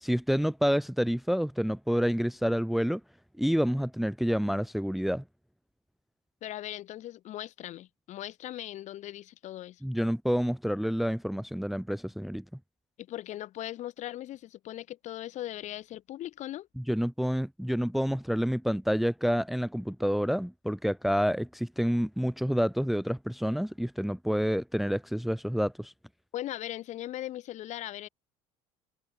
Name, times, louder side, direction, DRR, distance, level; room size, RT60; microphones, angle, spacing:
voice 1, 0.0-3.0 3.4-5.2 9.8-12.4 16.8-25.9, equal, ahead, 0.8 m, -28 dB
voice 2, 6.4-9.8 13.0-16.7 26.3-28.1, left 13 dB, 55° left, 3.2 m, -39 dB
open air
hypercardioid pair, 80°, 14 cm